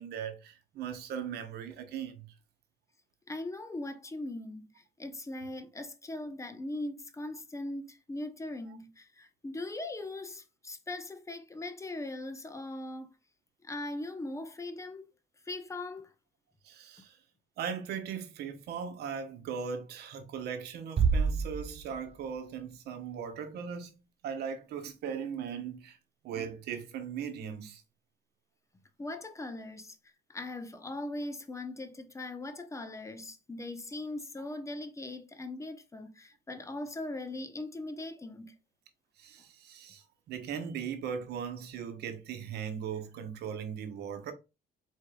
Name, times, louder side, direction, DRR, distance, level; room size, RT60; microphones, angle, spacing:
voice 1, 0.0-2.3 16.6-17.2 17.6-23.9 24.2-26.0 26.2-27.8 39.2-44.3, right 7 dB, 75° right, 1.1 m, -38 dB
voice 2, 3.3-13.1 13.6-15.0 15.4-16.1 29.0-30.0 30.3-38.6, left 2 dB, 15° left, 0.8 m, -40 dB
Bass drum, 21.0-22.4, right 5 dB, 35° right, 0.8 m, -28 dB
4.6 x 4.4 x 2.3 m
cardioid pair, 110°, 17 cm